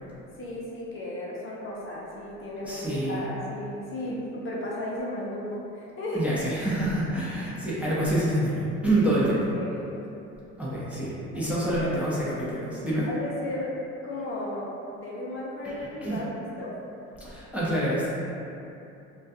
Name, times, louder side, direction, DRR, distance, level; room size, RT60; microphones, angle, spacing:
voice 1, 0.4-6.2 9.5-9.8 11.3-12.0 13.1-16.8, left 1 dB, 40° left, -5 dB, 0.6 m, -35 dB
voice 2, 2.6-3.2 6.1-9.5 10.6-13.1 15.6-16.2 17.2-18.1, right 1 dB, 5° right, -9 dB, 0.5 m, -27 dB
2.2 x 2.2 x 2.6 m, 2.8 s
supercardioid pair, 85°, 31 cm